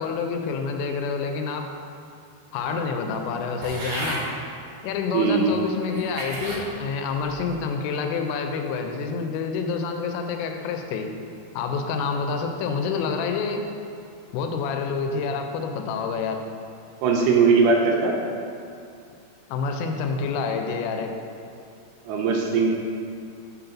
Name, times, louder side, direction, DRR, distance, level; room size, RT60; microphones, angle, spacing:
voice 1, 0.0-1.7 2.5-4.2 4.8-11.1 11.5-13.6 14.3-16.4 19.5-21.1, left 5 dB, 85° left, 4 dB, 2.9 m, -27 dB
sound 1, 3.6-4.3 5.1-5.2 5.8-6.6 7.2-7.6, right 1 dB, 60° right, 2.3 m, -33 dB
voice 2, 5.1-5.6 17.0-18.1 22.1-22.7, right 5 dB, 80° right, 0 dB, 2.6 m, -20 dB
6.2 x 4.0 x 5.7 m, 2.4 s
omnidirectional pair, 5.1 m